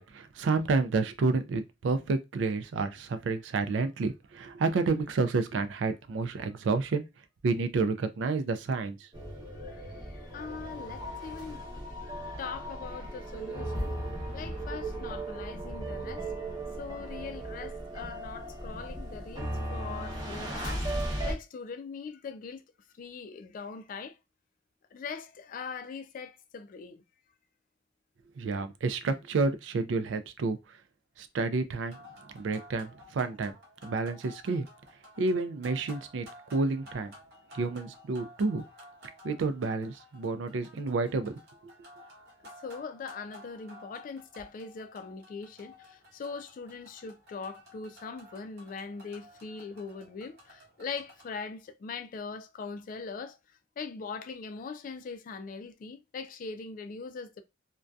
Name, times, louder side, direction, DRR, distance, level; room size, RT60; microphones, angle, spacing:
voice 1, 0.0-7.0 7.4-9.0 28.4-30.6 31.2-32.0 32.3-33.5 33.8-34.7 35.2-36.3 36.5-37.1 37.5-38.6 39.2-41.3, right 3 dB, 80° right, 0.4 m, -29 dB
sound 1, 9.1-21.3, right 1 dB, 20° right, 0.8 m, -37 dB
voice 2, 9.5-13.9 14.3-16.3 16.8-20.9 21.2-22.6 23.0-24.2 24.9-27.0 42.6-57.4, left 5 dB, 45° left, 0.3 m, -41 dB
sound 2, 31.8-51.4, left 1 dB, 60° right, 1.0 m, -53 dB
2.5 x 2.2 x 2.2 m
head